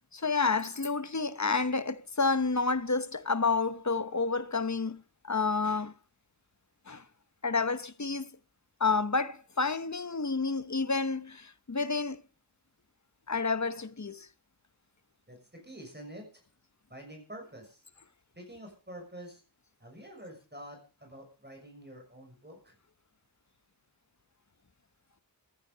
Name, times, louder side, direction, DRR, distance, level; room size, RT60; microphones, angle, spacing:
voice 1, 0.1-5.9 6.9-7.0 7.4-8.4 8.8-12.2 13.3-14.3, left 4 dB, 40° left, 1.1 m, -30 dB
voice 2, 15.3-16.3 16.9-17.8 18.4-19.4 19.8-22.7, right 1 dB, 25° right, 6.2 m, -47 dB
15.0 x 9.7 x 6.8 m
wide cardioid pair, 55°, 43 cm